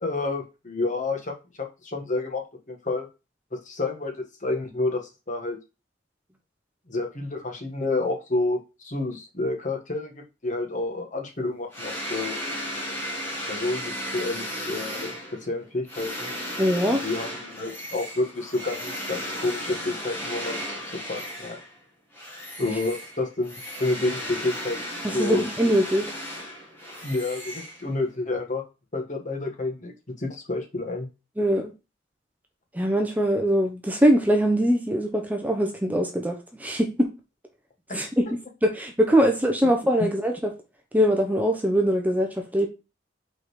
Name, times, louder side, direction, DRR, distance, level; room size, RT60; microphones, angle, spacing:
voice 1, 0.0-2.4 2.7-3.1 3.5-4.1 4.4-5.6 6.9-12.3 13.5-15.1 15.4-16.3 16.9-20.8 21.1-21.6 22.6-24.8 25.1-25.4 27.0-28.6 28.9-31.1 37.9-38.0, left 2 dB, 40° left, 3 dB, 1.5 m, -29 dB
sound 1, 11.7-21.8 22.1-28.1, equal, 15° left, 1.9 m, -35 dB
voice 2, 16.6-17.0 25.2-26.1 31.4-31.7 32.7-37.1 37.9-38.2 38.6-40.3 40.9-42.7, equal, 10° right, 3 dB, 0.8 m, -22 dB
5.5 x 4.2 x 4.7 m, 0.28 s
head